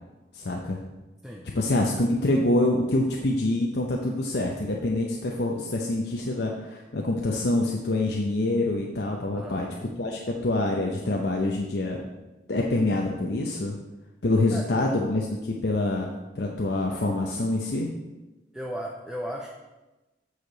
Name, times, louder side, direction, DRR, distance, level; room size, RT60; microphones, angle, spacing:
voice 1, 0.3-0.8 1.5-9.7 10.0-12.0 12.5-13.8 14.2-16.1 16.4-17.9, left 2 dB, 60° left, 0 dB, 0.7 m, -26 dB
voice 2, 9.3-9.7 14.5-14.7 18.5-19.5, equal, 5° right, -1 dB, 0.6 m, -35 dB
8.1 x 6.6 x 3.9 m, 1.1 s
head